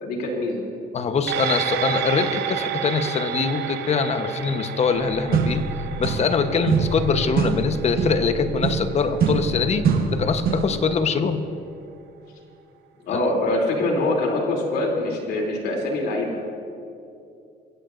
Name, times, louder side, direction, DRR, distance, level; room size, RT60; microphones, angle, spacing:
voice 1, 0.0-0.6 13.1-16.4, left 2 dB, 75° left, 0 dB, 3.1 m, -24 dB
voice 2, 0.9-5.6 6.0-11.4 13.1-13.2, left 5 dB, 40° left, 8 dB, 1.1 m, -23 dB
sound 1, 1.3-10.0 10.3-10.4, right 9 dB, 85° right, 0.8 m, -31 dB
sound 2, 4.9-5.0 5.3-6.4 6.7-10.8, right 5 dB, 60° right, 1.4 m, -24 dB
23.5 x 16.0 x 2.6 m, 2.6 s
cardioid pair, 110°, 17 cm